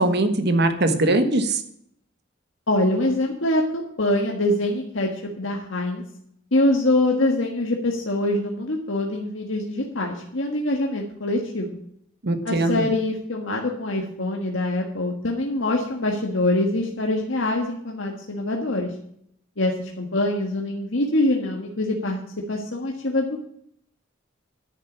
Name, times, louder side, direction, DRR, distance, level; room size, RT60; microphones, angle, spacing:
voice 1, 0.0-1.6 12.2-12.8, right 2 dB, 55° right, 8 dB, 1.4 m, -21 dB
voice 2, 2.7-6.0 6.5-11.8 12.4-18.9 19.6-22.2 22.5-23.4, left 1 dB, 75° left, 0 dB, 1.6 m, -24 dB
10.5 x 6.7 x 8.7 m, 0.69 s
head